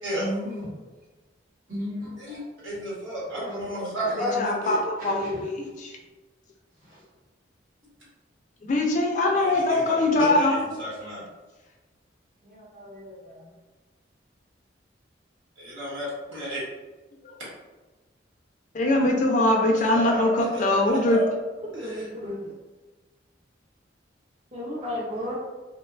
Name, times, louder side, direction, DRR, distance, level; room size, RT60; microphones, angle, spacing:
voice 1, 0.2-0.7 1.7-2.4 3.3-4.4 5.0-5.4 6.8-7.1 12.4-13.5, equal, 45° right, -7 dB, 1.0 m, -36 dB
voice 2, 2.6-4.8 9.3-11.2 15.6-16.6 19.9-21.3, equal, 85° right, -7 dB, 1.2 m, -32 dB
voice 3, 4.2-5.6 5.8-6.0 8.6-10.7 17.2-17.4 18.7-21.2, left 2 dB, 40° left, 1 dB, 0.3 m, -22 dB
voice 4, 19.1-19.9 21.7-22.5 24.5-25.4, equal, 30° right, -7 dB, 0.5 m, -34 dB
2.7 x 2.2 x 2.3 m, 1.2 s
head